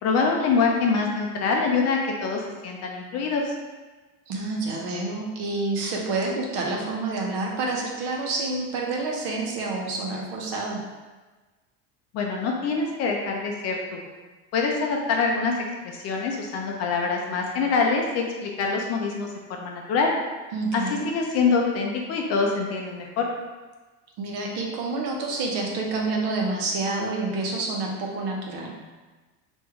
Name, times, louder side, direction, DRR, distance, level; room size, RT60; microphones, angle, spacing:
voice 1, 0.0-3.5 12.1-14.1 14.5-15.6 15.8-20.1 20.7-23.3, left 4 dB, 40° left, 0 dB, 0.5 m, -25 dB
voice 2, 4.3-10.8 20.5-21.1 24.2-28.8, right 3 dB, 65° right, -1 dB, 0.8 m, -28 dB
3.1 x 2.6 x 3.5 m, 1.3 s
cardioid pair, 165°, 38 cm